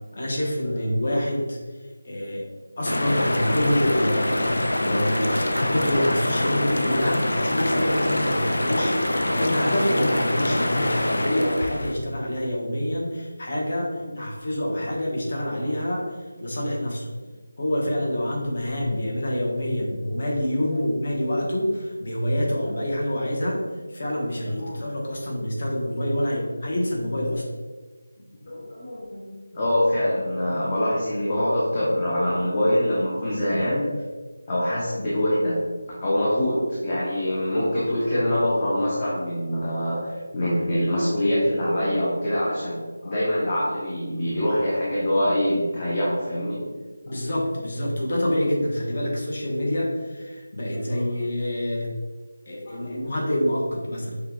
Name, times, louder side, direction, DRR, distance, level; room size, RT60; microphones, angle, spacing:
voice 1, 0.1-1.6 2.0-2.4 2.8-17.1 17.6-23.6 23.9-27.5 47.0-51.9 52.5-54.1, left 1 dB, 45° left, -3 dB, 1.3 m, -26 dB
sound 1, 2.8-11.9, left 1 dB, 75° left, 0.5 m, -25 dB
voice 2, 24.5-24.8 27.3-27.4 28.4-33.9 34.5-35.6 36.0-46.7 50.7-51.1 52.7-53.0, left 1 dB, 30° left, -7 dB, 0.9 m, -25 dB
6.3 x 2.4 x 3.1 m, 1.4 s
figure-of-eight pair, 170°, 0 cm